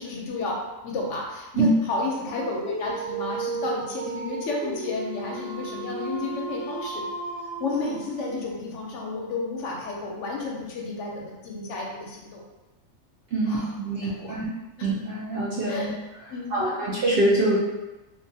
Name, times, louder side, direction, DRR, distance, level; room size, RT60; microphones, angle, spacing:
voice 1, 0.0-7.0 7.6-12.4 13.4-14.4 14.8-14.9 15.7-15.9 16.3-16.6, left 3 dB, 70° left, -2 dB, 0.9 m, -32 dB
Dog, 2.3-8.6, right 3 dB, 80° right, 1.1 m, -34 dB
voice 2, 13.3-14.5 14.8-15.9 16.5-17.6, right 2 dB, 65° right, -6 dB, 0.6 m, -24 dB
2.6 x 2.3 x 2.6 m, 1.0 s
omnidirectional pair, 1.4 m